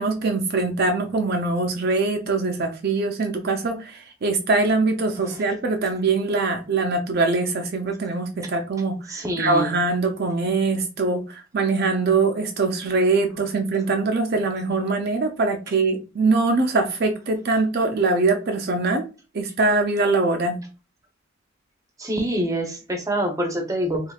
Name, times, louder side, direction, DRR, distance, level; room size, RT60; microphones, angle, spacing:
voice 1, 0.0-19.0 19.3-20.6, right 3 dB, 50° right, 0.5 m, -23 dB
voice 2, 9.1-9.7 22.0-24.1, right 1 dB, 15° right, 0.7 m, -26 dB
3.4 x 3.1 x 2.3 m
head